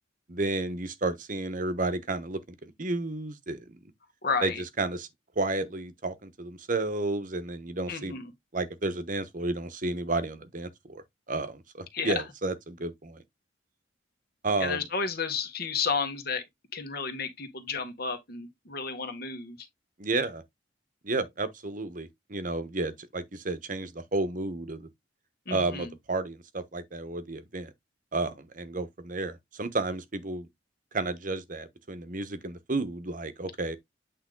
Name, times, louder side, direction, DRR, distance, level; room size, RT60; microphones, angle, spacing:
voice 1, 0.3-3.8 4.4-4.5 4.8-5.1 5.4-8.1 8.5-11.0 11.3-13.2 14.4-14.8 20.0-20.4 21.0-24.9 25.5-27.7 28.1-30.5 30.9-33.8, right 2 dB, 45° right, 1.1 m, -32 dB
voice 2, 4.2-4.6 7.9-8.3 11.9-12.2 14.6-16.4 16.7-19.6 25.4-25.9, left 5 dB, 55° left, 1.6 m, -32 dB
8.4 x 3.6 x 3.8 m
head